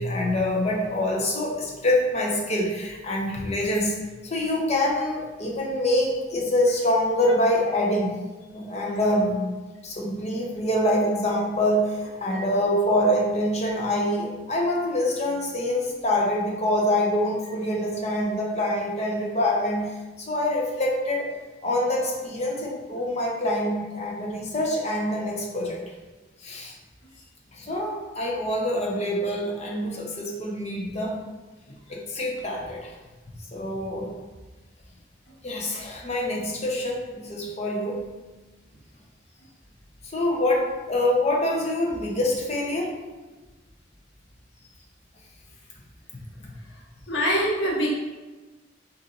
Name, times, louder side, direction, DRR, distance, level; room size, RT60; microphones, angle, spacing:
voice 1, 0.0-4.0 4.2-8.2 8.5-9.6 9.8-21.3 21.6-25.8 26.4-26.8 27.5-31.2 31.9-32.9 33.5-34.1 35.4-38.0 40.0-42.9 46.4-46.5, left 1 dB, 35° left, -1 dB, 0.8 m, -25 dB
voice 2, 47.1-47.9, equal, 85° left, -3 dB, 1.1 m, -24 dB
4.0 x 3.8 x 2.8 m, 1.2 s
head